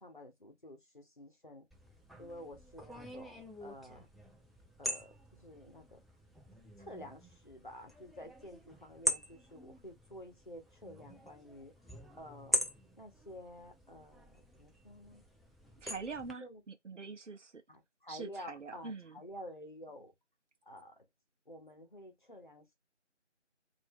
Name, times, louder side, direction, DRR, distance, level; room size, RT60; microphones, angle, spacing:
voice 1, 0.0-1.7 2.2-4.1 4.8-6.0 6.8-11.7 12.2-12.6 12.9-15.2 16.4-16.6 17.7-20.1 20.7-21.0 21.5-22.7, equal, 45° left, 0.9 m, -50 dB
sound 1, 1.7-16.3, equal, ahead, 0.4 m, -42 dB
voice 2, 15.8-17.6 18.1-19.2, right 4 dB, 80° right, 0.7 m, -44 dB
3.2 x 2.7 x 3.5 m
figure-of-eight pair, 175°, 36 cm